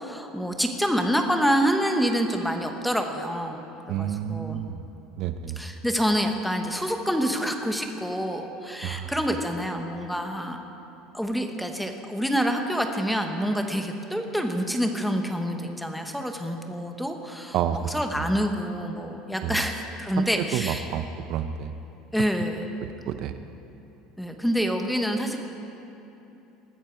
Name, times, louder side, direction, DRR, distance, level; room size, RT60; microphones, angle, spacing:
voice 1, 0.0-3.6 4.0-4.6 5.6-10.6 11.1-20.9 22.1-22.7 24.2-25.4, equal, ahead, 4 dB, 1.0 m, -27 dB
voice 2, 3.9-4.8 5.2-5.6 8.8-9.1 17.5-18.3 19.4-19.6 20.2-21.7 23.1-23.4, right 9 dB, 50° right, 10 dB, 0.5 m, -30 dB
20.5 x 13.5 x 4.6 m, 3.0 s
cardioid pair, 165°, 0 cm